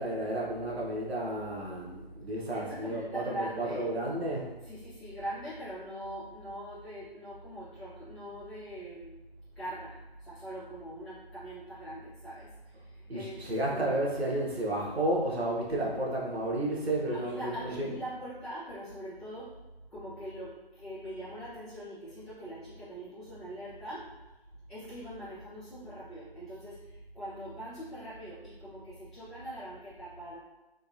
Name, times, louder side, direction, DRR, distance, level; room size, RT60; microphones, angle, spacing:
voice 1, 0.0-4.5 13.1-17.9, right 1 dB, 90° right, -3 dB, 1.1 m, -32 dB
voice 2, 2.5-3.9 4.6-9.2 9.5-14.0 17.1-19.5 19.9-24.1 24.7-30.3, right 1 dB, 5° left, -18 dB, 0.5 m, -42 dB
3.6 x 2.4 x 2.6 m, 1.1 s
figure-of-eight pair, 145°, 30 cm